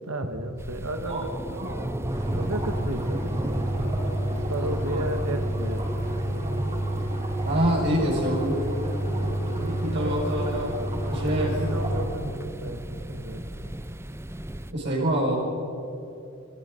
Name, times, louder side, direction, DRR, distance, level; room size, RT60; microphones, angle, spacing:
voice 1, 0.0-1.6 2.3-3.6 4.3-5.9 9.1-10.4 11.3-13.4, right 1 dB, 85° right, 7 dB, 1.8 m, -34 dB
sound 1, 0.6-14.7, right 1 dB, 10° right, 0.6 m, -35 dB
voice 2, 1.5-1.8 4.6-4.7 4.9-5.0 7.4-9.5 9.8-10.7 11.1-11.6 14.7-15.4, equal, 55° right, -3 dB, 6.8 m, -27 dB
sound 2, 2.0-12.0, right 1 dB, 30° right, 5.9 m, -29 dB
26.5 x 22.5 x 5.5 m, 3.0 s
head